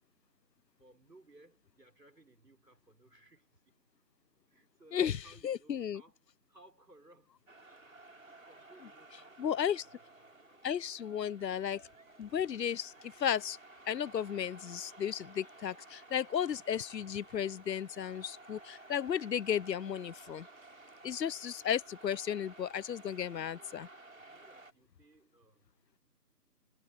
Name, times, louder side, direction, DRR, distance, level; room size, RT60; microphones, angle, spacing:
voice 1, 0.8-3.7 4.5-6.2 6.5-7.5 8.0-10.4 17.5-17.7 23.3-23.9 24.3-25.7, right 2 dB, 80° right, 5.5 m, -62 dB
voice 2, 4.9-6.0 9.4-9.8 10.6-11.8 12.2-13.6 13.9-20.5 21.0-23.9, left 9 dB, 85° left, 0.6 m, -34 dB
sound 1, 7.5-24.7, right 2 dB, 55° right, 7.0 m, -55 dB
figure-of-eight pair, 180°, 48 cm